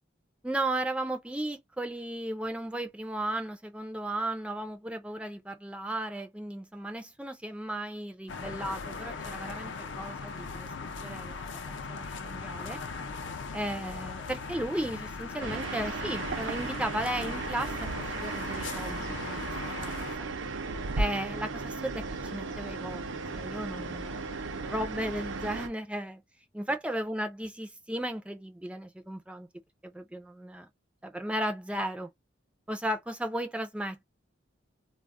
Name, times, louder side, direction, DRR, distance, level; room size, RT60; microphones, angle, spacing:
voice 1, 0.4-10.7 11.0-11.6 11.9-12.8 13.5-17.8 18.1-19.4 19.6-20.3 21.0-22.0 22.3-24.2 24.6-26.2 26.5-29.5 29.8-30.7 31.0-32.1 32.7-34.0, right 1 dB, 5° right, 0.3 m, -35 dB
sound 1, 8.3-20.2, left 4 dB, 70° left, 0.5 m, -39 dB
sound 2, 15.4-25.7, right 3 dB, 80° right, 0.5 m, -35 dB
2.3 x 2.0 x 3.4 m
head